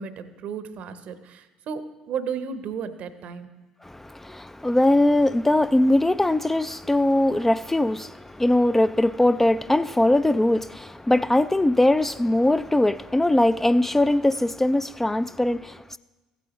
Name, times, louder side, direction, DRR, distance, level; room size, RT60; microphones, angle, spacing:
voice 1, 0.0-3.5, right 6 dB, 60° right, 0.8 m, -33 dB
voice 2, 3.8-16.0, left 1 dB, 10° left, 0.3 m, -21 dB
15.5 x 8.3 x 3.0 m
hypercardioid pair, 55°, 3 cm